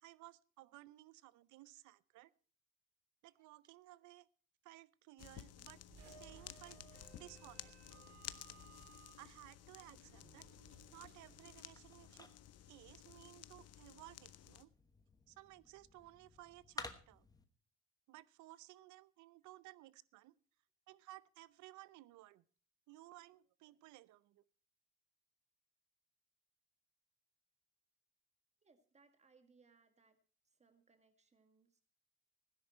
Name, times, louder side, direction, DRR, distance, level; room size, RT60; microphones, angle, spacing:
voice 1, 0.0-2.3 3.2-4.3 4.6-8.0 9.2-10.5 10.9-12.3 12.7-14.7 15.3-17.3 18.1-20.4 20.9-22.4 22.9-24.4, right 17 dB, 80° right, 20 dB, 0.7 m, -58 dB
sound 1, 5.2-14.6, left 12 dB, 55° left, 0.8 m, -55 dB
sound 2, 5.9-12.4, right 6 dB, 60° right, 2.6 m, -62 dB
sound 3, 10.6-17.4, left 3 dB, 15° left, 1.2 m, -56 dB
voice 2, 28.6-30.2 30.4-31.8, right 4 dB, 25° right, 8 dB, 1.9 m, -70 dB
16.0 x 10.5 x 4.3 m, 0.42 s
cardioid pair, 115°, 29 cm